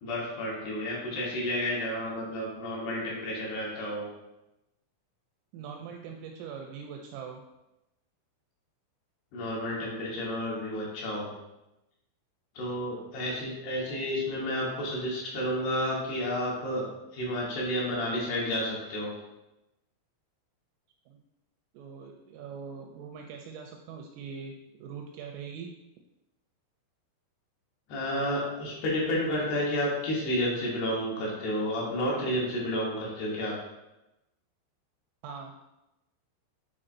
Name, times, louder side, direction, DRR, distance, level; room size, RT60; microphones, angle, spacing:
voice 1, 0.0-4.1 9.3-11.3 12.6-19.1 27.9-33.6, equal, 65° left, -4 dB, 2.7 m, -31 dB
voice 2, 5.5-7.4 21.1-21.2 21.7-25.8 35.2-35.5, right 6 dB, 85° right, 3 dB, 2.8 m, -42 dB
9.8 x 4.1 x 2.5 m, 0.94 s
omnidirectional pair, 5.9 m